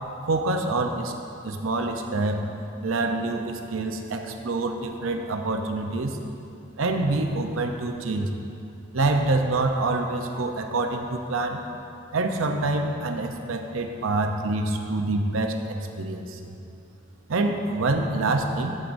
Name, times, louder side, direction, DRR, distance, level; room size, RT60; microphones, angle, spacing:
voice 1, 0.3-1.1 1.4-2.4 2.8-6.2 6.8-8.3 8.9-11.6 12.1-16.5 17.3-18.8, right 2 dB, 85° right, 4 dB, 0.6 m, -26 dB
12.0 x 7.6 x 2.6 m, 2.7 s
head